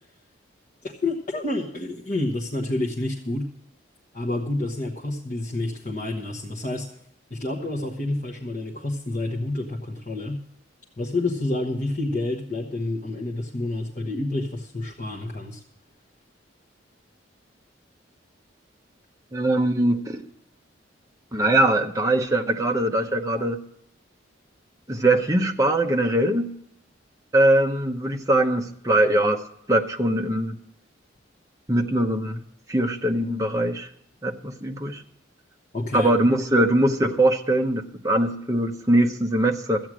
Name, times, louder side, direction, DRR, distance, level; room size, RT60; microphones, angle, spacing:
voice 1, 0.8-3.5 4.1-6.9 7.3-10.4 11.0-15.6 35.7-36.1, left 2 dB, 40° left, -2 dB, 1.2 m, -29 dB
voice 2, 19.3-20.2 21.3-23.6 24.9-26.5 27.3-29.4 29.7-30.6 31.7-32.4 32.7-33.9 34.2-35.0 35.9-39.9, right 1 dB, 15° right, 3 dB, 0.8 m, -22 dB
13.5 x 9.1 x 6.2 m, 0.73 s
head